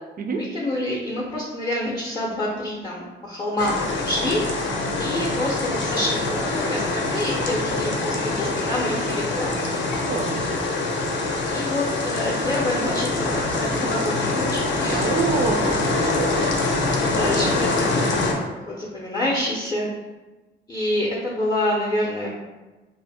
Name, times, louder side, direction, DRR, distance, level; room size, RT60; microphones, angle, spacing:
voice 1, 0.4-4.4 5.0-9.5 11.5-15.2 17.1-18.1 18.3-19.9 20.7-22.4, left 1 dB, 20° left, -4 dB, 0.5 m, -27 dB
sound 1, 3.6-18.3, left 2 dB, 65° left, 0.6 m, -24 dB
voice 2, 5.2-5.7 10.1-10.4 14.9-16.6, right 4 dB, 45° right, 4 dB, 0.4 m, -27 dB
2.5 x 2.0 x 3.3 m, 1.2 s
cardioid pair, 90°, 20 cm